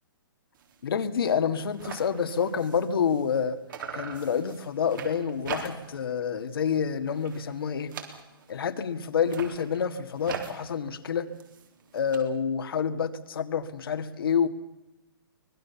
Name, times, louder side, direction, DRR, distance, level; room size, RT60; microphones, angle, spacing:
sound 1, 0.5-0.8 1.1-1.2 1.4-3.4 3.7-6.1 6.4-6.8 7.1-8.6 9.1-12.2, right 6 dB, 60° right, 3.9 m, -41 dB
voice 1, 0.8-3.6 3.9-7.9 8.5-11.3 11.9-14.5, left 7 dB, 75° left, 2.0 m, -28 dB
24.5 x 20.0 x 7.1 m
hypercardioid pair, 150°, 12 cm